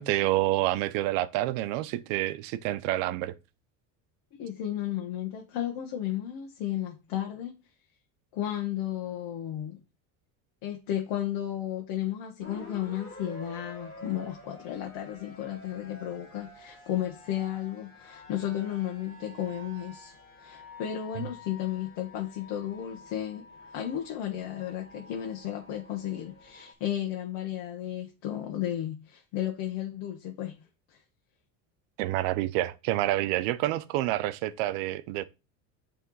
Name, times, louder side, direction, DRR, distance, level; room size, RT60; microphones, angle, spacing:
voice 1, 0.0-3.3 21.1-21.3 32.0-35.2, right 15 dB, 80° right, 0.7 m, -28 dB
voice 2, 4.4-7.5 8.3-9.8 10.6-30.6 30.9-31.0, left 11 dB, 65° left, 1.2 m, -33 dB
sound 1, 12.4-26.7, left 2 dB, 30° left, 2.3 m, -49 dB
8.3 x 3.5 x 3.9 m
supercardioid pair, 115°, 42 cm